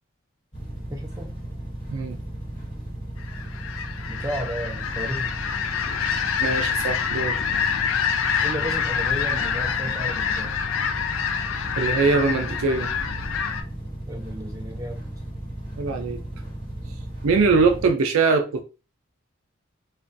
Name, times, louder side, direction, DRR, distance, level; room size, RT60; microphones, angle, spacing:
sound 1, 0.5-17.9, right 1 dB, 35° left, 1.2 m, -35 dB
voice 1, 0.9-1.3 4.1-5.3 8.4-10.6 14.1-15.1, right 1 dB, 15° right, 0.4 m, -33 dB
sound 2, 3.2-13.6, left 7 dB, 70° left, 0.3 m, -26 dB
voice 2, 6.4-7.4 11.8-12.9 15.8-16.2 17.2-18.6, right 4 dB, 80° right, 0.4 m, -22 dB
2.4 x 2.2 x 2.5 m
head